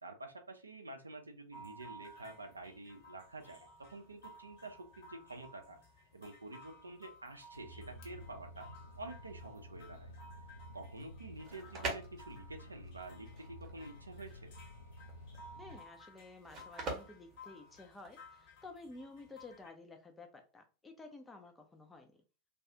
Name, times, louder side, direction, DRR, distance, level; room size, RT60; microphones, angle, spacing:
voice 1, 0.0-5.8 6.1-8.7 9.0-10.1 10.7-14.5, right 2 dB, 80° right, 0.5 m, -49 dB
sound 1, 1.5-19.7, equal, 45° left, 1.2 m, -57 dB
sound 2, 7.5-15.8, left 1 dB, 75° left, 0.5 m, -52 dB
sound 3, 11.2-18.3, right 2 dB, 30° right, 0.9 m, -45 dB
voice 2, 15.5-22.2, left 3 dB, 10° left, 0.5 m, -53 dB
2.3 x 2.3 x 2.7 m
figure-of-eight pair, 90°, 0 cm